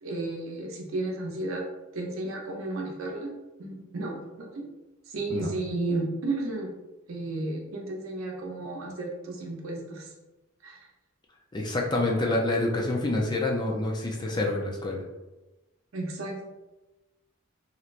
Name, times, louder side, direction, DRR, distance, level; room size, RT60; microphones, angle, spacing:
voice 1, 0.0-1.6 1.9-3.3 3.6-4.7 5.1-6.7 7.1-10.1 10.6-10.8 15.9-16.5, right 2 dB, 75° right, 0 dB, 0.7 m, -33 dB
voice 2, 11.5-15.0, left 2 dB, 20° left, -1 dB, 0.4 m, -27 dB
3.1 x 2.8 x 2.5 m, 1.1 s
head